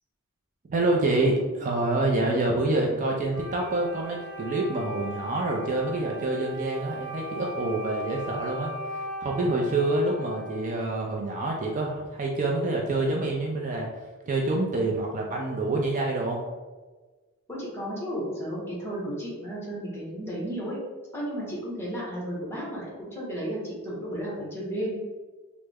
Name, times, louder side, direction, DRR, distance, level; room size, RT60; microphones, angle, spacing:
voice 1, 0.7-13.9 14.3-16.4, right 2 dB, 35° right, 0 dB, 0.3 m, -27 dB
Wind instrument woodwind instrument, 3.3-11.0, right 1 dB, 65° right, 0.8 m, -38 dB
voice 2, 17.5-20.8 21.1-25.0, equal, 10° left, -5 dB, 1.0 m, -33 dB
3.3 x 2.0 x 3.4 m, 1.3 s
head